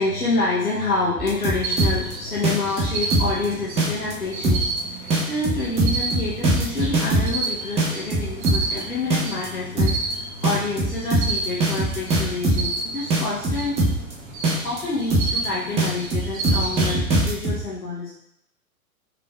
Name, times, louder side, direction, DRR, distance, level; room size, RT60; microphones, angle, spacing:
voice 1, 0.0-13.8 14.6-18.1, left 3 dB, 85° left, -7 dB, 0.9 m, -28 dB
sound 1, 1.2-2.1 2.4-3.4 3.8-4.1 4.4-4.8 5.1-7.4 7.8-8.8 9.1-9.5 9.8-10.1 10.4-12.8 13.1-14.1 14.4-14.8 15.1-15.4 15.8-17.6, right 2 dB, 15° right, 0.6 m, -21 dB
sound 2, 1.6-17.0, right 3 dB, 40° right, 1.4 m, -31 dB
5.1 x 3.4 x 2.3 m, 0.75 s
figure-of-eight pair, 100°, 43 cm